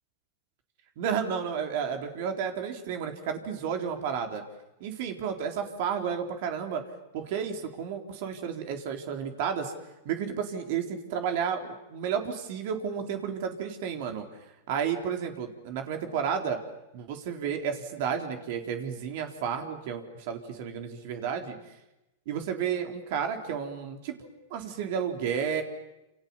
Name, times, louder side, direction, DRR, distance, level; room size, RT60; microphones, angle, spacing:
voice 1, 1.0-4.4 4.8-6.8 7.1-9.7 10.0-14.3 14.7-16.6 16.9-21.6 22.3-25.6, right 7 dB, 60° right, 4 dB, 4.1 m, -32 dB
28.5 x 28.5 x 7.3 m, 0.93 s
hypercardioid pair, 130°, 0 cm